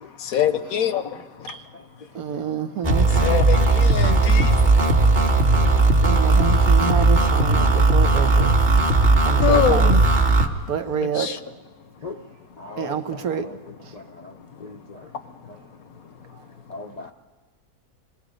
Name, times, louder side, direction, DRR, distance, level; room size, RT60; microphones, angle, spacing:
voice 1, 0.2-1.0 1.4-1.5 3.2-4.5 9.4-10.0 11.2-11.4, left 10 dB, 70° left, 11 dB, 1.2 m, -23 dB
voice 2, 2.1-3.1 5.6-8.5 9.2-9.9 10.7-11.3 12.8-13.5 13.8-13.9, right 7 dB, 70° right, 8 dB, 1.4 m, -28 dB
sound 1, 2.8-10.5, right 3 dB, 35° right, 1.3 m, -17 dB
voice 3, 12.6-13.6 13.9-14.3 14.6-15.1 16.7-17.1, left 3 dB, 45° left, 2 dB, 0.5 m, -39 dB
26.5 x 20.0 x 5.1 m, 1.3 s
omnidirectional pair, 1.6 m